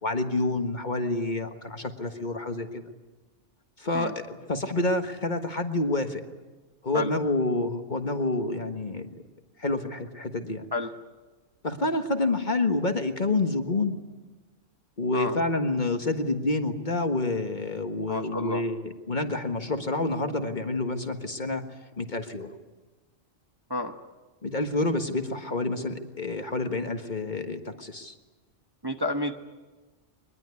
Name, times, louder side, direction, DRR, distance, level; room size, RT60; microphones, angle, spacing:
voice 1, 0.0-2.9 3.8-6.2 6.8-9.2 9.6-10.7 11.6-14.0 15.0-21.6 22.0-22.6 24.4-28.1, left 2 dB, 40° left, 6 dB, 1.6 m, -28 dB
voice 2, 18.1-18.6 23.7-23.9 28.8-29.4, left 1 dB, 20° right, 4 dB, 1.1 m, -30 dB
22.5 x 21.5 x 9.7 m, 1.2 s
omnidirectional pair, 1.3 m